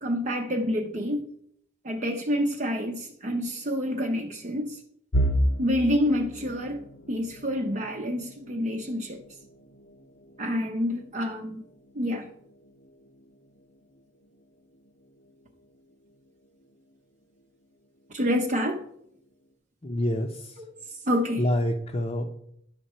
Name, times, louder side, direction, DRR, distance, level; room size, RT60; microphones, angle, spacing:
voice 1, 0.0-1.3 1.8-4.8 5.6-9.2 10.4-11.6 11.9-12.3 18.1-18.8 20.6-20.7 21.1-21.4, equal, 40° right, 3 dB, 0.8 m, -28 dB
sound 1, 5.1-17.0 17.4-17.7 18.0-18.2 19.1-19.5, equal, 80° left, 1.1 m, -35 dB
voice 2, 19.8-20.6 21.4-22.3, left 1 dB, 35° left, -1 dB, 0.8 m, -27 dB
11.0 x 5.6 x 4.3 m, 0.72 s
head